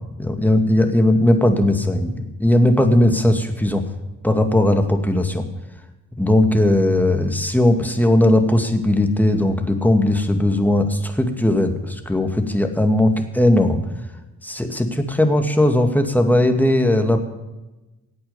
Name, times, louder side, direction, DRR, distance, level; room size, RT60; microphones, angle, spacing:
voice 1, 0.2-3.8 4.2-5.4 6.2-13.8 14.4-17.2, left 1 dB, 5° left, 5 dB, 2.2 m, -18 dB
17.0 x 8.6 x 7.1 m, 1.1 s
hypercardioid pair, 40°, 43 cm